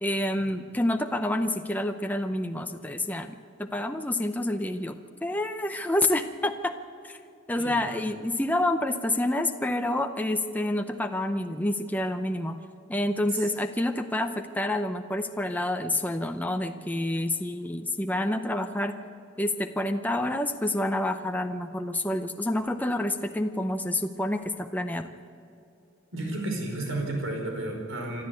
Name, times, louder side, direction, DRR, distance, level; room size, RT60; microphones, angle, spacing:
voice 1, 0.0-6.8 7.0-7.2 7.5-12.6 12.9-19.0 19.4-25.1, left 1 dB, 10° left, 6 dB, 0.7 m, -28 dB
voice 2, 7.5-8.0 13.3-13.4 26.1-28.2, right 2 dB, 85° right, 2 dB, 4.8 m, -32 dB
27.0 x 12.5 x 8.4 m, 2.6 s
head